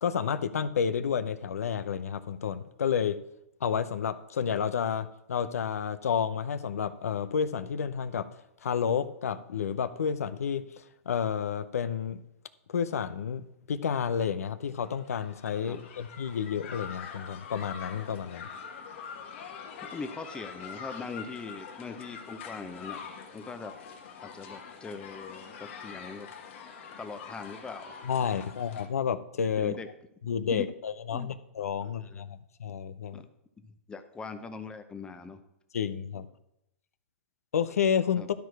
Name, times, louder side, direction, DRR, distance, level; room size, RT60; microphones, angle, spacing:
voice 1, 0.0-3.2 3.6-8.3 8.6-12.2 12.7-18.5 28.0-29.8 30.2-33.2 35.7-36.3 37.5-38.2, left 7 dB, 85° left, 13 dB, 0.6 m, -30 dB
sound 1, 14.8-28.9, left 6 dB, 55° left, 1.3 m, -44 dB
voice 2, 19.8-23.0 23.3-23.7 24.2-26.3 27.0-28.0 29.6-29.9 30.5-30.6 31.1-31.3 31.8-32.2 33.1-33.3 33.9-35.4 38.2-38.3, left 4 dB, 10° left, 8 dB, 0.7 m, -41 dB
12.0 x 4.6 x 4.7 m, 0.85 s
hypercardioid pair, 135°, 8 cm